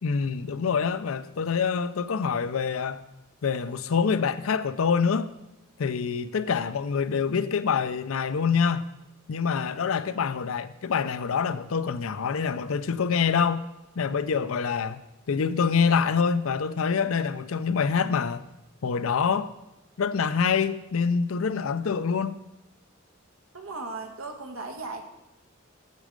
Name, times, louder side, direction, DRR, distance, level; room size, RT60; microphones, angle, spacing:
voice 1, 0.0-3.0 3.4-5.3 5.8-8.9 9.3-13.6 14.0-15.0 15.3-18.4 18.8-19.5 20.0-22.4, left 6 dB, 80° left, 0.5 m, -26 dB
voice 2, 23.5-25.0, right 3 dB, 85° right, 1.2 m, -36 dB
8.2 x 7.4 x 5.2 m
head